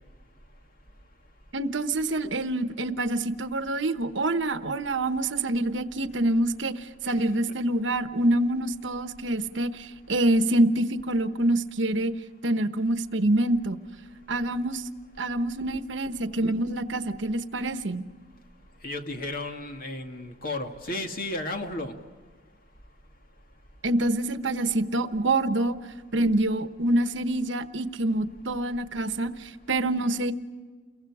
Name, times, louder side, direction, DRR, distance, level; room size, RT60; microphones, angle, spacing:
voice 1, 1.5-12.1 12.4-13.8 14.3-14.8 15.2-18.0 23.8-25.8 26.1-30.3, right 1 dB, 75° right, 10 dB, 1.1 m, -26 dB
voice 2, 18.8-21.9, left 2 dB, 50° left, 4 dB, 2.2 m, -33 dB
29.5 x 23.0 x 4.9 m, 1.5 s
head